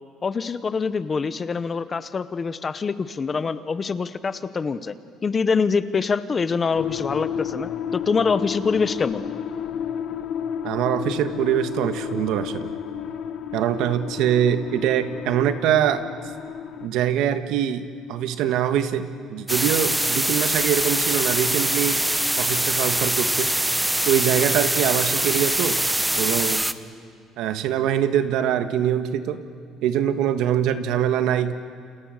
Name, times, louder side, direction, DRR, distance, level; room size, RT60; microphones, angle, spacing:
voice 1, 0.2-5.0 5.2-9.3, left 5 dB, 25° left, 13 dB, 0.9 m, -25 dB
sound 1, 6.7-16.9, left 8 dB, 60° left, 1.4 m, -31 dB
voice 2, 10.6-12.7 13.5-16.1 16.8-22.1 22.4-23.5 24.0-25.8 26.2-26.6 27.4-29.4 29.8-31.5, right 10 dB, 75° right, 9 dB, 1.4 m, -23 dB
sound 2, 19.5-26.7, right 1 dB, 5° right, 0.8 m, -23 dB
29.0 x 28.0 x 6.6 m, 2.2 s
cardioid pair, 140°, 0 cm